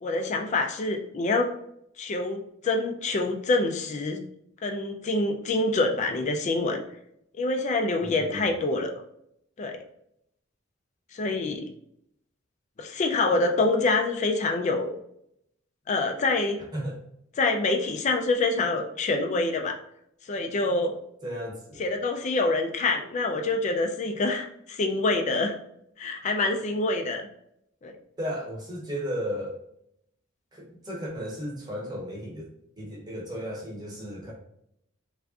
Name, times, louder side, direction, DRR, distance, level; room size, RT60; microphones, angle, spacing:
voice 1, 0.0-1.5 2.0-4.2 4.6-6.8 7.4-8.9 9.6-9.8 11.1-11.7 12.8-14.9 15.9-16.6 17.4-19.8 20.2-20.9 21.8-25.5 26.0-27.2 27.8-27.9, left 2 dB, 35° left, 3 dB, 0.3 m, -26 dB
voice 2, 8.0-8.5 16.7-17.0 21.2-21.9 28.2-29.6 30.5-32.5 32.8-34.3, equal, 20° right, -2 dB, 0.9 m, -34 dB
3.4 x 2.5 x 2.4 m, 0.75 s
head